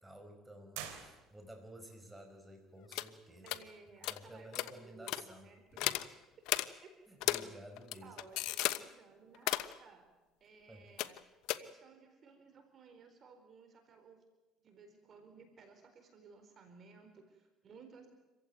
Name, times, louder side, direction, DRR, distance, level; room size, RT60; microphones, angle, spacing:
voice 1, 0.0-3.5 4.0-6.0 7.1-8.2 10.7-10.9, right 1 dB, 10° right, 4 dB, 5.1 m, -53 dB
sound 1, 0.7-1.7, right 10 dB, 90° right, 3.4 m, -47 dB
sound 2, 2.9-3.1 3.5-3.6 4.0-4.2 4.5-4.7 5.1-5.2 5.8-6.1 6.5-6.7 7.2-7.4 7.8-8.8 9.3-9.7 11.0-11.2 11.5-11.6, left 17 dB, 75° left, 1.0 m, -34 dB
voice 2, 3.4-5.8 6.8-7.0 8.0-10.1 10.4-11.2 11.6-14.2 14.6-18.1, right 4 dB, 45° right, 6 dB, 4.3 m, -58 dB
27.5 x 15.5 x 9.5 m, 1.1 s
cardioid pair, 105°, 0 cm